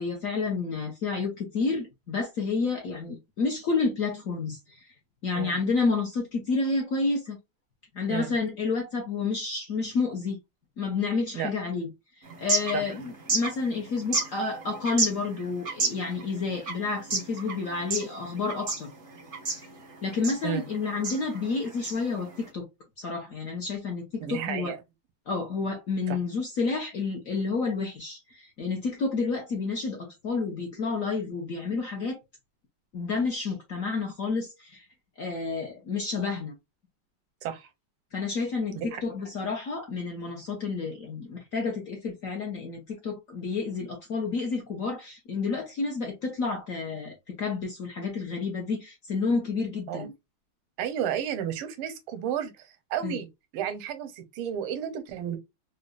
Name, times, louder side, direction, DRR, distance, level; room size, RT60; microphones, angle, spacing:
voice 1, 0.0-4.8 5.2-7.4 7.9-10.4 10.8-11.9 12.4-18.9 20.0-22.7 23.0-24.7 25.3-32.2 32.9-34.8 35.2-36.5 38.1-50.1 53.0-53.2, left 4 dB, 55° left, 0.9 m, -30 dB
sound 1, 12.2-22.5, right 3 dB, 45° right, 0.7 m, -33 dB
voice 2, 24.2-24.8 26.1-26.2 37.4-37.7 38.7-39.0 49.9-50.1 50.8-53.3 53.5-55.4, right 9 dB, 90° right, 1.6 m, -32 dB
3.9 x 2.3 x 2.2 m
omnidirectional pair, 2.3 m